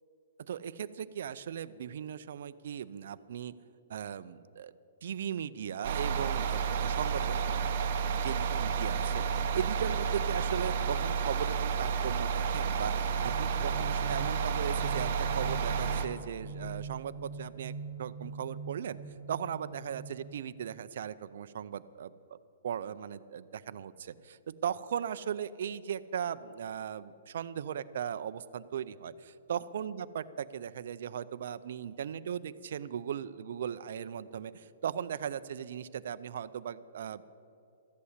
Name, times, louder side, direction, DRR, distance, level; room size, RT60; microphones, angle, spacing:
voice 1, 0.5-3.5 3.9-4.7 5.0-7.9 8.1-9.2 9.5-17.7 18.0-19.0 19.3-22.1 22.6-37.3, right 8 dB, 60° right, 13 dB, 0.5 m, -38 dB
sound 1, 5.8-16.1, right 6 dB, 45° right, 1.0 m, -31 dB
sound 2, 12.8-20.7, right 4 dB, 70° left, 2.6 m, -44 dB
13.5 x 8.4 x 8.1 m, 2.7 s
hypercardioid pair, 165°, 0 cm